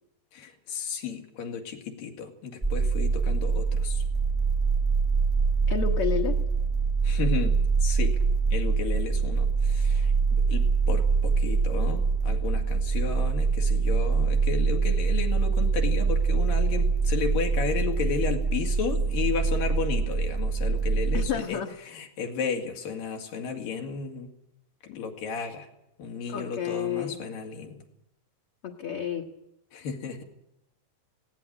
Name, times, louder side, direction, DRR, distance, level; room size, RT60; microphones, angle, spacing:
voice 1, 0.3-4.0 7.0-8.2 8.5-21.6 21.9-24.3 24.8-25.7 26.0-27.8 29.7-30.2, left 6 dB, 80° left, 3 dB, 4.0 m, -33 dB
sound 1, 2.6-21.3, right 5 dB, 10° right, 1.4 m, -24 dB
voice 2, 5.7-6.4 21.1-21.7 26.3-27.2 28.6-29.3, left 9 dB, 55° left, 0 dB, 2.0 m, -30 dB
18.0 x 17.0 x 10.0 m, 0.83 s
omnidirectional pair, 3.9 m